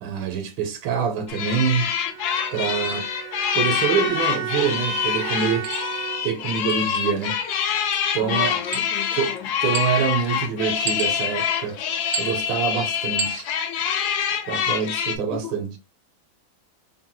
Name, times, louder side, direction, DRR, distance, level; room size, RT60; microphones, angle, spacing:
voice 1, 0.0-1.9 2.5-3.1 3.5-5.7 6.2-7.4 8.1-8.6 9.1-9.3 9.6-11.8 12.2-13.5 14.5-15.7, right 7 dB, 90° right, 1.6 m, -25 dB
sound 1, 1.3-15.2, left 8 dB, 70° left, 1.0 m, -26 dB
Bowed string instrument, 2.1-6.6, right 9 dB, 70° right, 0.9 m, -34 dB
sound 2, 4.1-4.2 5.6-5.9 6.7-7.0 7.9-8.1 8.7-9.2 9.7-10.2 10.9-11.4 12.1-12.4 13.2-13.5, right 7 dB, 45° right, 0.5 m, -32 dB
voice 2, 8.1-9.5 15.3-15.5, left 8 dB, 85° left, 1.6 m, -34 dB
3.8 x 2.2 x 4.3 m
omnidirectional pair, 2.1 m